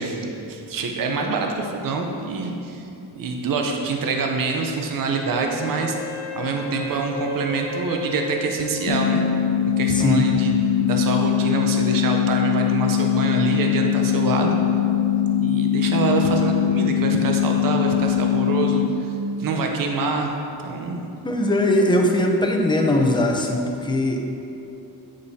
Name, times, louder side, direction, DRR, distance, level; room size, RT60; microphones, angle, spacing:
voice 1, 0.0-2.9 3.2-6.0 6.3-9.2 9.8-14.5 15.4-19.1 19.4-20.3 20.6-21.0, right 4 dB, 55° right, 2 dB, 0.8 m, -25 dB
Wind instrument woodwind instrument, 5.3-9.5, left 2 dB, 75° left, 1.2 m, -34 dB
sound 1, 8.9-18.9, left 9 dB, 55° left, 0.7 m, -21 dB
voice 2, 9.9-10.2 21.2-24.2, left 1 dB, 10° left, 1 dB, 0.7 m, -20 dB
8.5 x 5.3 x 2.8 m, 2.8 s
cardioid pair, 95°, 41 cm